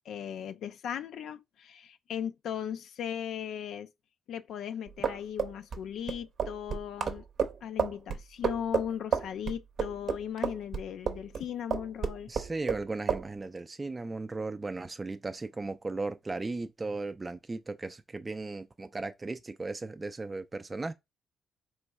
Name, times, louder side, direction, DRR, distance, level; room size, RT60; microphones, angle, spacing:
voice 1, 0.1-3.9 4.3-7.3 7.6-12.3, left 9 dB, 75° left, 0.3 m, -37 dB
sound 1, 4.9-11.4 11.7-12.8 13.1-13.3, right 7 dB, 60° right, 0.7 m, -31 dB
voice 2, 12.3-20.9, right 3 dB, 25° right, 0.4 m, -36 dB
3.1 x 3.0 x 4.6 m
cardioid pair, 90°, 0 cm